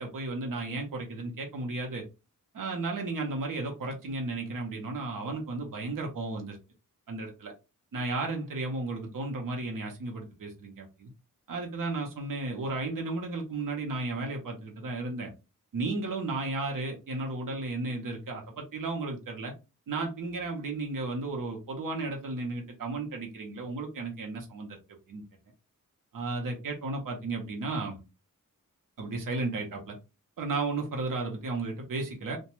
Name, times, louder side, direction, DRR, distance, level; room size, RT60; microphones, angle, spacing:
voice 1, 0.0-2.0 2.5-6.6 7.1-7.5 7.9-11.1 11.5-15.3 15.7-19.5 19.9-24.8 25.1-25.2 26.1-28.0 29.0-30.0 30.4-32.4, right 3 dB, 70° right, 1 dB, 0.8 m, -34 dB
2.6 x 2.2 x 3.0 m, 0.28 s
wide cardioid pair, 160°, 33 cm